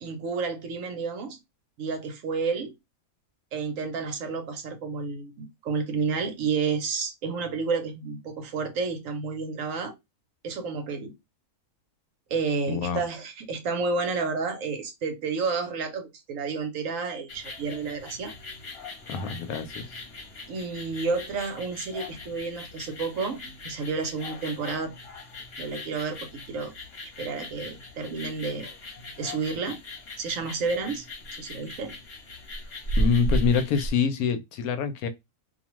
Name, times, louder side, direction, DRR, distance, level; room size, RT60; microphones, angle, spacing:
voice 1, 0.0-1.4 1.8-2.7 3.5-9.9 10.4-11.1 12.3-18.3 20.5-24.9 25.6-26.7 27.0-28.7 29.2-29.8 30.2-31.0 31.4-32.0, right 4 dB, 65° right, 1.0 m, -30 dB
voice 2, 12.7-13.0 19.1-19.6 33.0-35.1, left 6 dB, 85° left, 1.1 m, -25 dB
sound 1, 17.3-33.9, equal, 45° left, 1.1 m, -36 dB
2.6 x 2.2 x 3.0 m
omnidirectional pair, 1.5 m